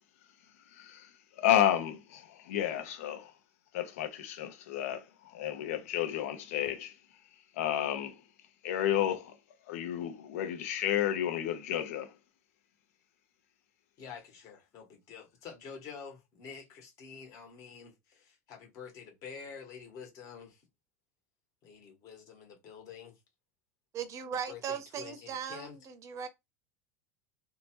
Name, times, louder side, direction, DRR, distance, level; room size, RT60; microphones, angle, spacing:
voice 1, 0.7-1.1 1.4-3.3 3.7-5.0 5.3-6.9 7.6-8.2 8.6-9.3 9.7-12.1, left 11 dB, 75° left, 0.8 m, -31 dB
voice 2, 14.0-20.6 21.6-23.2 24.5-25.8, left 6 dB, 50° left, 1.3 m, -48 dB
voice 3, 23.9-26.3, right 7 dB, 40° right, 0.7 m, -38 dB
2.8 x 2.2 x 3.0 m
hypercardioid pair, 90°, 8 cm